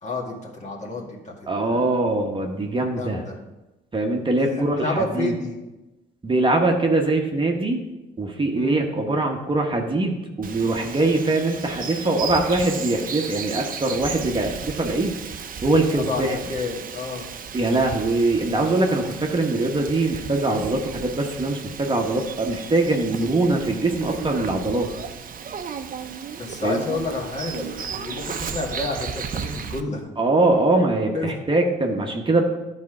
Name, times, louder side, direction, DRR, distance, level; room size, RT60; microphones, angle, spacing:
voice 1, 0.0-1.9 3.0-3.4 4.4-5.6 8.6-8.8 15.9-17.3 26.4-30.0 31.1-31.3, left 2 dB, 35° left, -2 dB, 2.0 m, -30 dB
voice 2, 1.5-3.2 3.9-5.3 6.2-7.8 8.2-15.1 15.6-16.4 17.5-24.9 26.6-26.8 30.2-32.4, right 2 dB, 25° right, 1 dB, 1.0 m, -22 dB
Bird vocalization bird call bird song, 10.4-29.8, right 7 dB, 45° right, 0.6 m, -35 dB
11.0 x 4.3 x 4.9 m, 1.0 s
cardioid pair, 90°, 20 cm